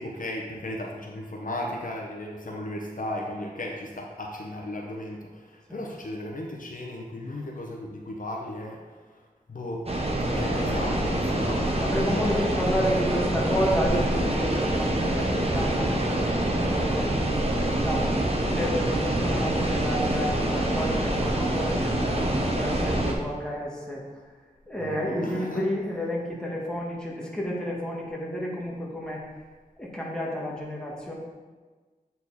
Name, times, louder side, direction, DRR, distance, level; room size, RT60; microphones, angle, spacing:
voice 1, 0.0-9.2 9.5-9.9 10.3-12.3 24.8-25.6, left 1 dB, 60° left, -1 dB, 0.9 m, -36 dB
sound 1, 9.9-23.1, right 1 dB, 40° right, 1.1 m, -25 dB
voice 2, 11.8-18.1 18.4-24.0 24.7-29.2 29.8-31.1, equal, 5° left, -3 dB, 1.8 m, -31 dB
8.3 x 4.4 x 4.2 m, 1.4 s
wide cardioid pair, 60°, 16 cm